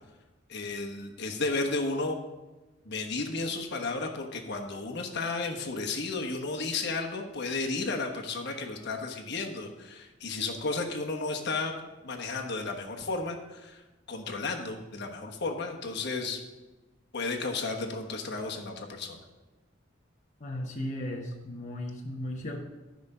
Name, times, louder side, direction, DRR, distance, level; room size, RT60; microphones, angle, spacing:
voice 1, 0.5-2.2 2.8-11.8 12.0-13.8 14.1-16.4 17.1-19.2, left 3 dB, 60° left, 2 dB, 1.2 m, -33 dB
voice 2, 20.4-22.6, left 1 dB, 40° left, 0 dB, 1.0 m, -36 dB
13.0 x 5.2 x 5.5 m, 1.1 s
head